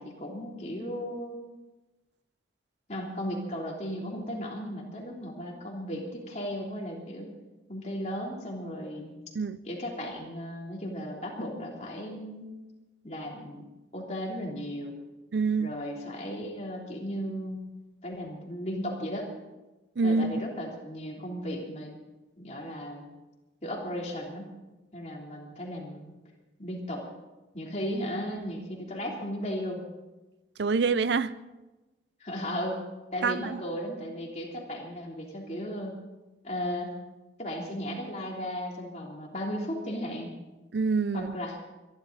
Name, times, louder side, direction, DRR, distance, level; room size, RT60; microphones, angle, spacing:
voice 1, 0.0-1.4 2.9-7.3 7.7-9.1 9.6-12.5 13.0-13.6 13.9-15.0 15.6-17.6 18.0-19.3 20.0-21.9 22.4-23.0 23.6-24.5 24.9-26.1 26.6-27.1 27.5-29.8 32.2-32.8 33.1-36.0 36.4-36.9 37.4-40.3 41.1-41.6, equal, 40° left, 3.2 m, -35 dB
voice 2, 15.3-15.7 20.0-20.3 30.6-31.4 33.2-33.6 40.7-41.3, right 4 dB, 75° right, 0.5 m, -26 dB
25.5 x 11.5 x 4.0 m
head